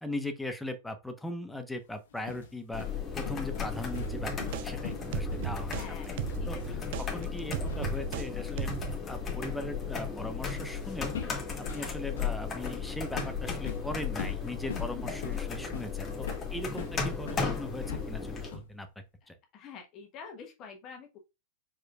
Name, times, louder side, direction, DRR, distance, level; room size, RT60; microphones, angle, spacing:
voice 1, 0.0-2.9 3.1-5.9 6.5-6.6 7.1-8.7 9.1-11.2 11.6-18.9 19.3-19.4, left 1 dB, 5° left, 1.0 m, -39 dB
sound 1, 1.9-8.1 8.4-8.6 10.5-10.8 11.1-17.5 17.9-18.8, left 6 dB, 65° left, 1.1 m, -43 dB
sound 2, 2.7-18.5, left 6 dB, 25° left, 1.6 m, -35 dB
sound 3, 3.9-4.7 5.1-5.9 6.2-8.3 8.6-9.0, right 15 dB, 55° right, 0.5 m, -36 dB
voice 2, 5.7-6.7 15.0-15.1 16.5-16.6 19.5-21.2, left 6 dB, 40° left, 1.2 m, -47 dB
4.8 x 4.5 x 2.4 m
figure-of-eight pair, 90°, 0 cm